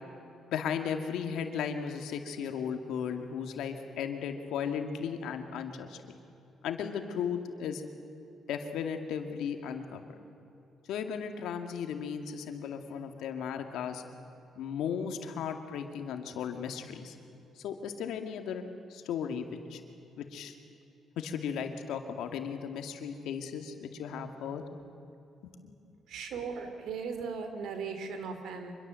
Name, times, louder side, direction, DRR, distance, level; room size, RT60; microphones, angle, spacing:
voice 1, 0.5-6.0 6.6-7.8 8.5-10.0 10.9-14.0 14.6-17.2 17.6-18.6 18.9-19.8 20.2-20.5 21.2-24.6 25.4-25.7, left 7 dB, 85° left, 5 dB, 2.2 m, -36 dB
voice 2, 26.1-28.8, right 5 dB, 80° right, 7 dB, 3.0 m, -38 dB
25.5 x 22.5 x 7.7 m, 2.8 s
cardioid pair, 90°, 0 cm